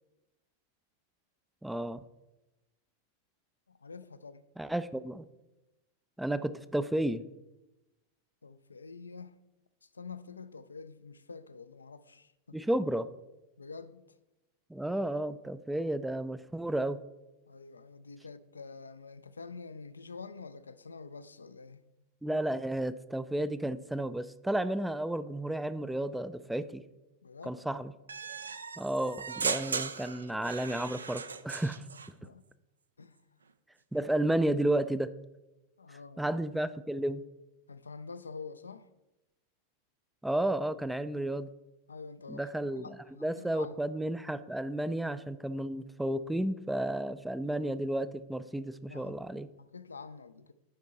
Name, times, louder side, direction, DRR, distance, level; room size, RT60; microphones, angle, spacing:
voice 1, 1.6-2.0 4.6-5.2 6.2-7.2 12.5-13.1 14.7-17.0 22.2-26.8 27.4-27.9 28.8-31.9 33.9-35.1 36.2-37.2 40.2-41.5 42.3-49.5, right 1 dB, 5° right, 0.3 m, -32 dB
voice 2, 3.7-4.5 8.4-9.4 9.8-12.6 13.6-14.0 17.5-21.8 27.2-27.6 32.2-32.4 33.0-33.4 35.8-36.3 37.7-38.9 41.9-42.5 42.7-43.8 44.9-45.0 48.9-49.2 49.6-50.5, left 4 dB, 75° left, 0.3 m, -47 dB
sound 1, 28.1-32.1, right 5 dB, 75° right, 0.4 m, -37 dB
10.5 x 4.4 x 4.0 m
figure-of-eight pair, 90°, 0 cm